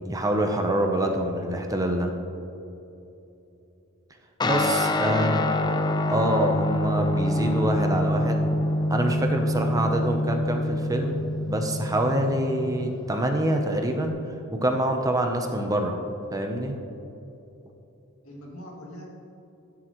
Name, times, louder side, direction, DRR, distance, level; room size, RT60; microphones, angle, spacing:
voice 1, 0.1-2.1 4.4-5.4 6.1-8.4 8.9-14.2 14.5-15.9 16.3-16.8, right 1 dB, 15° right, 3 dB, 0.7 m, -26 dB
Guitar, 4.4-14.1, left 1 dB, 20° left, 0.5 m, -26 dB
voice 2, 4.8-5.7 18.2-19.1, left 1 dB, 75° left, -3 dB, 2.4 m, -41 dB
15.5 x 7.6 x 3.1 m, 2.9 s
head